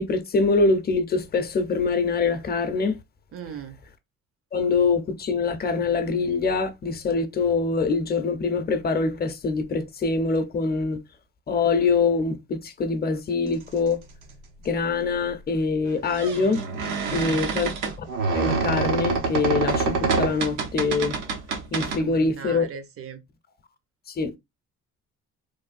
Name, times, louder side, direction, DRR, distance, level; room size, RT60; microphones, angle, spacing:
voice 1, 0.0-3.0 4.5-11.0 11.5-14.0 14.6-16.6 17.1-17.7 18.0-18.1 18.3-21.2 21.7-22.7 24.2-24.4, left 4 dB, 30° left, 0.6 m, -24 dB
voice 2, 3.3-3.8 17.0-17.6 22.0-23.2, right 8 dB, 50° right, 0.7 m, -39 dB
sound 1, 14.2-14.3 15.9-22.0, right 4 dB, 85° right, 0.9 m, -26 dB
3.1 x 2.2 x 2.5 m
cardioid pair, 90°, 30 cm